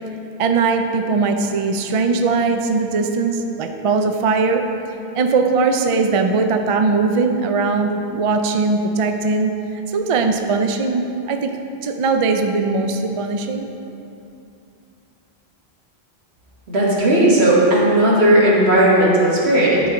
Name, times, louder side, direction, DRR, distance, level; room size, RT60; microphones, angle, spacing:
voice 1, 0.4-4.6 5.1-9.5 9.9-11.6 11.8-13.7, right 4 dB, 50° right, 5 dB, 0.4 m, -20 dB
voice 2, 16.7-19.8, right 1 dB, 80° right, -5 dB, 1.7 m, -15 dB
11.0 x 4.6 x 3.8 m, 2.7 s
omnidirectional pair, 1.1 m